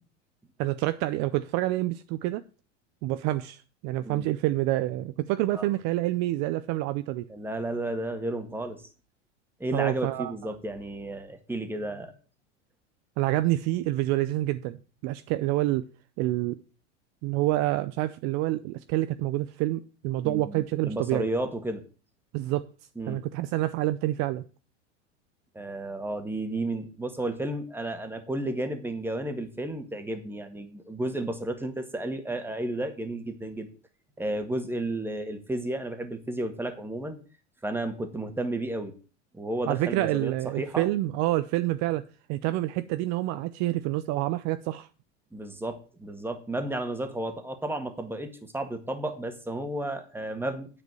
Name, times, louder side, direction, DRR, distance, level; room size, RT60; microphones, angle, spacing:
voice 1, 0.6-2.4 3.0-7.3 9.7-10.3 13.2-15.8 16.2-16.6 17.2-21.3 22.3-22.7 23.1-24.4 39.7-42.0 42.3-44.9, right 16 dB, 45° right, 0.6 m, -27 dB
voice 2, 7.3-8.8 9.6-12.1 20.2-21.8 22.9-23.2 25.5-33.7 34.2-37.2 37.6-38.9 39.3-40.9 45.3-50.7, right 1 dB, 5° right, 1.8 m, -32 dB
9.6 x 5.1 x 7.8 m
hypercardioid pair, 105°, 37 cm